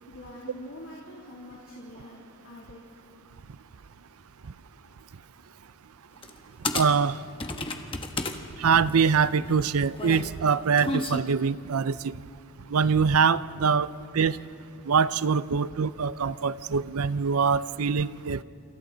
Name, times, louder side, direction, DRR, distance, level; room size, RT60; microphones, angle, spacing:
voice 1, 0.1-2.8, left 1 dB, 70° left, -5 dB, 2.8 m, -44 dB
sound 1, 6.2-6.4 6.6-8.4 8.7-11.2, left 2 dB, 25° left, 1.1 m, -32 dB
voice 2, 6.7-7.1 8.6-12.1 12.7-13.9 14.1-14.4 14.9-18.4, right 6 dB, 80° right, 16 dB, 0.6 m, -24 dB
28.0 x 27.0 x 4.0 m, 2.4 s
head